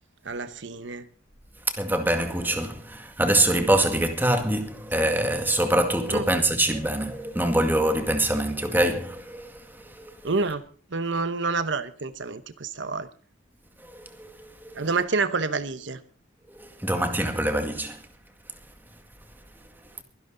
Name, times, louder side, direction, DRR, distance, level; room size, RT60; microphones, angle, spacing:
voice 1, 0.2-1.0 6.1-6.3 10.2-10.6 10.9-13.1 14.8-16.0, right 4 dB, 65° right, 1.0 m, -28 dB
voice 2, 1.8-10.2 13.9-14.8 16.6-18.0, right 1 dB, 10° right, 2.0 m, -25 dB
23.5 x 11.0 x 3.9 m
head